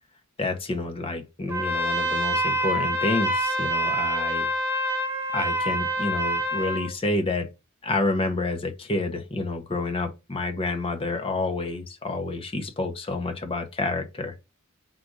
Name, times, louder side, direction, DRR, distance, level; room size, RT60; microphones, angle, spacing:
voice 1, 0.4-4.5 5.3-7.5 7.8-14.3, left 2 dB, 25° left, 0.7 m, -29 dB
Trumpet, 1.5-6.9, right 1 dB, 10° right, 0.9 m, -26 dB
3.8 x 2.5 x 4.5 m
head